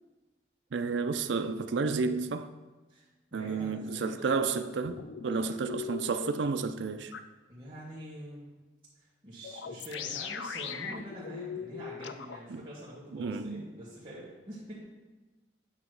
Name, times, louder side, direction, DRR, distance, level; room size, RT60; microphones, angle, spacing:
voice 1, 0.7-2.5 3.3-7.1 12.5-12.6 13.1-13.7, right 4 dB, 85° right, 0.4 m, -31 dB
voice 2, 3.3-4.6 5.3-5.5 7.5-8.6 8.9-14.8, equal, 30° right, 1.4 m, -45 dB
sound 1, 4.9-6.3 7.1-7.2 9.4-12.4, left 7 dB, 90° left, 0.4 m, -39 dB
8.5 x 3.0 x 6.2 m
head